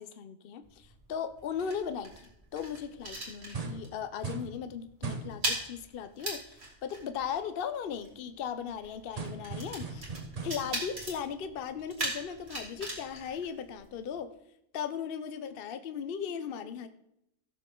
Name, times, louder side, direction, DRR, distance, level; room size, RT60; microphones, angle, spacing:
voice 1, 0.0-10.1 10.4-14.3 14.7-16.9, left 7 dB, 60° left, 10 dB, 0.8 m, -37 dB
sound 1, 0.6-4.0 4.2-4.5 4.8-14.2, right 1 dB, 65° right, 2.9 m, -40 dB
sound 2, 3.5-3.9 4.2-4.6 5.0-5.4 9.2-10.7, right 4 dB, 35° right, 1.0 m, -38 dB
16.5 x 7.0 x 3.7 m, 0.80 s
omnidirectional pair, 1.2 m